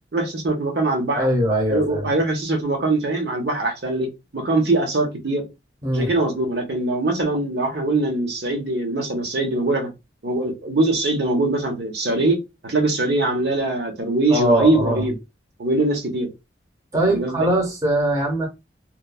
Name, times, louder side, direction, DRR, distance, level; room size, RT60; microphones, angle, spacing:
voice 1, 0.1-1.3 1.7-5.5 5.9-9.9 10.2-12.4 12.6-15.1 15.6-16.3 17.0-17.5, right 2 dB, 65° right, 0.7 m, -22 dB
voice 2, 1.1-2.1 5.8-6.1 14.3-15.0 16.9-18.5, right 1 dB, 20° right, 0.8 m, -21 dB
2.9 x 2.2 x 2.2 m
head